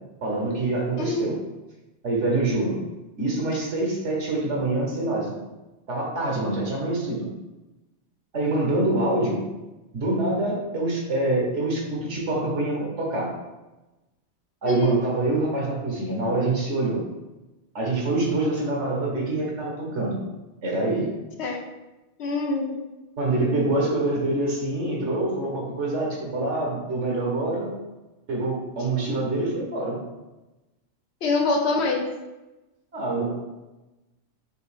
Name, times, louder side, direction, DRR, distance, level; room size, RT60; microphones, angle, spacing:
voice 1, 0.2-1.4 2.0-2.8 3.2-5.3 5.9-7.3 8.3-9.4 9.9-13.3 14.6-17.0 17.7-20.2 20.6-21.1 23.2-27.7 28.3-30.0 32.9-33.3, right 2 dB, 75° right, -2 dB, 1.4 m, -25 dB
voice 2, 14.7-15.0 21.4-21.6 22.2-22.8 31.2-32.0, left 2 dB, 65° left, 2 dB, 0.9 m, -24 dB
5.3 x 2.8 x 3.3 m, 1.1 s
omnidirectional pair, 1.2 m